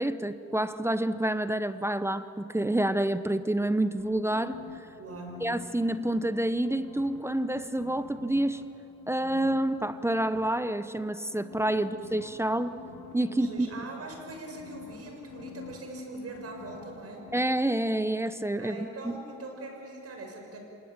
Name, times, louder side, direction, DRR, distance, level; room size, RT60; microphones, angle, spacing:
voice 1, 0.0-4.6 5.4-8.6 9.1-12.7 13.1-13.9 17.3-19.2, right 1 dB, 10° right, 12 dB, 0.9 m, -28 dB
sound 1, 4.0-6.3 6.6-8.6 9.0-10.5 11.3-17.0 17.2-17.4, left 6 dB, 70° left, 4.7 m, -47 dB
voice 2, 5.0-5.5 11.8-11.9 13.3-17.3 18.6-20.6, right 2 dB, 50° right, 3 dB, 6.8 m, -42 dB
27.5 x 19.0 x 9.0 m, 2.8 s
cardioid pair, 90°, 30 cm